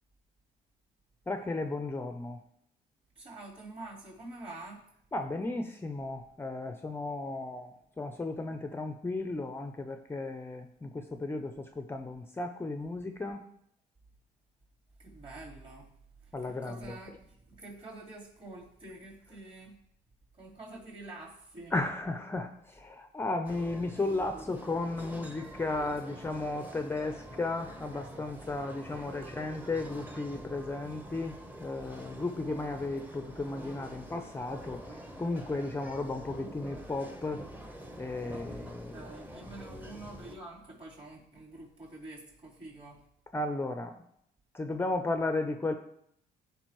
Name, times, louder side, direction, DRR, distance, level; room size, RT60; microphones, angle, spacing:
voice 1, 1.3-2.4 5.1-13.4 16.3-17.0 21.7-37.4 38.0-39.1 43.3-44.0 44.5-45.7, left 2 dB, 15° left, 7 dB, 0.5 m, -35 dB
voice 2, 3.2-4.8 15.0-15.9 16.2-19.8 20.3-21.7 29.2-29.3 38.9-43.0, right 2 dB, 35° right, -4 dB, 4.0 m, -47 dB
sound 1, 23.4-40.4, right 1 dB, 10° right, 0.9 m, -46 dB
14.0 x 5.3 x 3.1 m, 0.72 s
cardioid pair, 110°, 17 cm